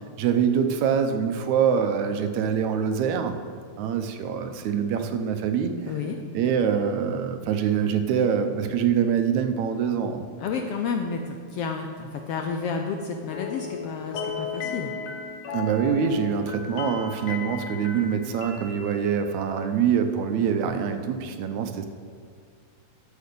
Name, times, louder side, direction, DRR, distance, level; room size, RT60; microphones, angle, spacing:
voice 1, 0.2-3.4 3.8-5.7 6.3-10.3 15.5-21.9, right 7 dB, 80° right, 7 dB, 2.1 m, -24 dB
voice 2, 5.9-6.2 10.4-14.9, left 5 dB, 75° left, 4 dB, 1.4 m, -30 dB
sound 1, 13.3-19.3, left 6 dB, 60° left, 1.6 m, -35 dB
12.0 x 6.2 x 6.7 m, 2.2 s
omnidirectional pair, 3.3 m